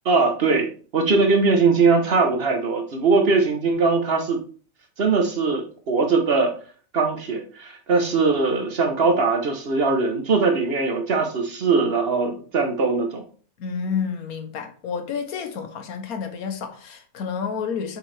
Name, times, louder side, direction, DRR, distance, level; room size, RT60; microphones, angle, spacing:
voice 1, 0.0-4.4 5.0-6.5 6.9-13.2, right 4 dB, 50° right, 1.0 m, -21 dB
voice 2, 13.6-18.0, left 6 dB, 85° left, 1.4 m, -30 dB
6.5 x 4.5 x 3.3 m
omnidirectional pair, 1.5 m